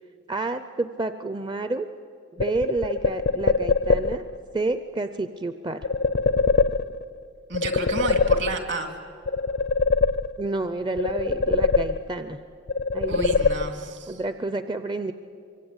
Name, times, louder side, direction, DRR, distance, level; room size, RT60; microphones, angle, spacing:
voice 1, 0.3-1.9 2.3-4.3 4.5-5.9 10.4-12.4 12.9-13.4 14.1-15.1, right 2 dB, 25° right, 10 dB, 0.6 m, -29 dB
sound 1, 2.4-4.4 5.8-7.2 7.5-8.9 9.2-10.6 11.0-12.3 12.7-14.0, left 4 dB, 55° left, 0.6 m, -23 dB
voice 2, 7.5-8.9 13.1-14.2, right 3 dB, 60° right, 6 dB, 2.9 m, -31 dB
24.5 x 24.5 x 8.9 m, 2.5 s
head